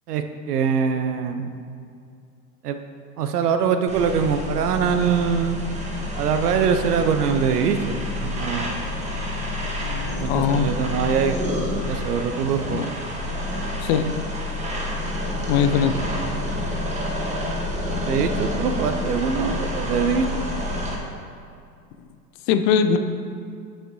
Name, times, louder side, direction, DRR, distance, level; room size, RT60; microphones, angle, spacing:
voice 1, 0.1-1.5 2.6-2.8 3.2-5.6 6.2-8.8 10.2-11.4 11.9-12.9 18.0-20.2, right 6 dB, 70° right, 7 dB, 0.9 m, -23 dB
sound 1, 3.9-21.0, left 1 dB, 15° right, 1.4 m, -28 dB
voice 2, 9.8-10.7 12.7-12.9 13.8-14.0 15.5-15.9 22.5-23.0, left 8 dB, 40° left, 9 dB, 0.6 m, -21 dB
11.0 x 6.5 x 3.1 m, 2.4 s
hypercardioid pair, 95°, 49 cm